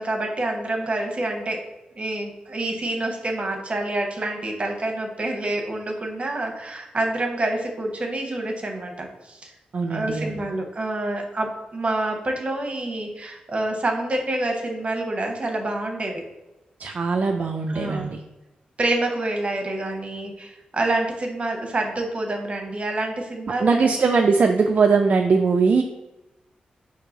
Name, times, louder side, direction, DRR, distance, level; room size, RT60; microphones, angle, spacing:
voice 1, 0.0-1.6 2.0-9.5 9.9-16.2 17.7-18.1 18.8-24.0, right 2 dB, 40° right, 2 dB, 0.9 m, -27 dB
voice 2, 9.7-10.4 16.8-18.2 23.6-25.8, right 4 dB, 60° right, 3 dB, 0.3 m, -20 dB
4.5 x 2.7 x 3.8 m, 0.98 s
cardioid pair, 50°, 3 cm